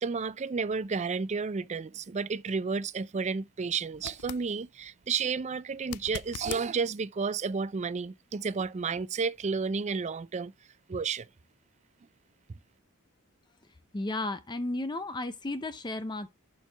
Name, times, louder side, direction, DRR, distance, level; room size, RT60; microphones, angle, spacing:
voice 1, 0.0-10.5 10.9-11.3, right 5 dB, 30° right, 0.4 m, -31 dB
sound 1, 3.9-4.5 5.8-6.7 9.7-9.8, left 10 dB, 90° left, 0.4 m, -41 dB
voice 2, 13.9-16.3, left 2 dB, 20° left, 0.6 m, -33 dB
11.5 x 4.6 x 3.3 m
head